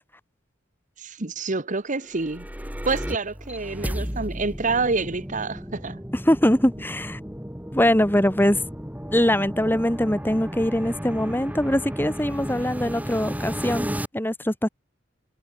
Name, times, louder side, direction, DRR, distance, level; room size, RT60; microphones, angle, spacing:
voice 1, 1.0-2.5 2.8-6.0, right 3 dB, 40° right, 1.3 m, -27 dB
sound 1, 2.0-14.1, equal, 10° right, 5.5 m, -34 dB
voice 2, 6.3-7.2 7.7-8.6 9.1-13.9 14.1-14.7, left 1 dB, 10° left, 3.6 m, -22 dB
head